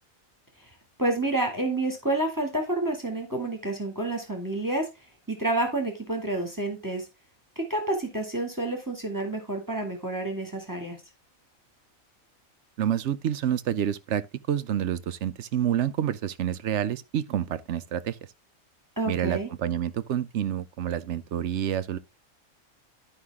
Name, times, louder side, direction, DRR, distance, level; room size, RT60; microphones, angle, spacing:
voice 1, 1.0-4.9 5.3-7.1 7.6-11.0 19.0-19.5, right 2 dB, 15° right, 2.1 m, -29 dB
voice 2, 12.8-18.2 19.1-22.0, right 10 dB, 65° right, 0.9 m, -28 dB
11.5 x 5.6 x 3.6 m
omnidirectional pair, 1.4 m